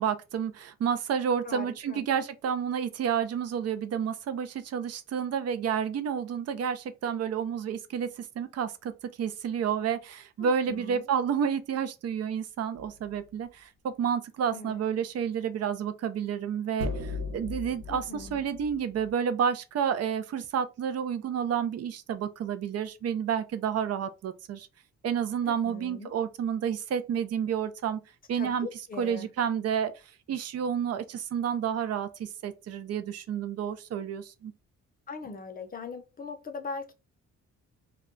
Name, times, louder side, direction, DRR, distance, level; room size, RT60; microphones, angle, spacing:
voice 1, 0.0-24.7 25.0-28.0 28.3-28.7 29.0-29.9 30.3-34.5, right 7 dB, 55° right, 0.6 m, -30 dB
voice 2, 1.4-2.0 10.4-11.1 14.5-14.8 17.9-18.5 25.4-26.1 28.3-29.3 35.1-36.9, left 4 dB, 30° left, 0.6 m, -40 dB
sound 1, 12.8-13.1 16.8-19.1, left 3 dB, 70° right, 1.0 m, -37 dB
2.3 x 2.1 x 3.7 m
cardioid pair, 90°, 30 cm